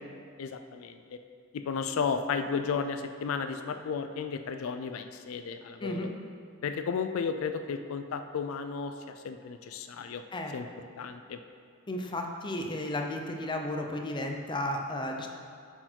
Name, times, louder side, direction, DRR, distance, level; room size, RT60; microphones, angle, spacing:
voice 1, 0.4-1.2 1.5-6.1 6.6-10.2 10.5-10.7 11.0-11.4, left 5 dB, 75° left, 8 dB, 0.4 m, -33 dB
voice 2, 5.8-6.2 10.3-10.5 11.9-15.3, left 1 dB, 20° left, 2 dB, 0.6 m, -33 dB
7.6 x 4.5 x 4.4 m, 2.4 s
head